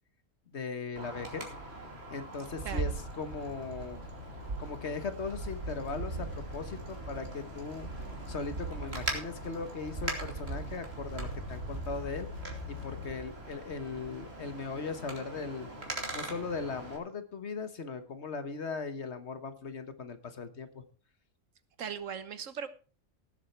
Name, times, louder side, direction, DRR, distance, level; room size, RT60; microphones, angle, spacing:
voice 1, 0.5-1.5 2.1-2.9 3.2-4.1 4.6-7.9 8.3-12.3 12.7-15.7 16.1-20.8, left 4 dB, 60° left, 10 dB, 1.6 m, -38 dB
Wind, 1.0-17.0, right 3 dB, 55° right, 3.1 m, -40 dB
voice 2, 2.6-2.9 21.8-22.7, right 7 dB, 75° right, 12 dB, 1.5 m, -38 dB
sound 1, 2.8-13.3, left 5 dB, 85° left, 3.9 m, -48 dB
18.0 x 7.5 x 4.5 m, 0.37 s
omnidirectional pair, 1.3 m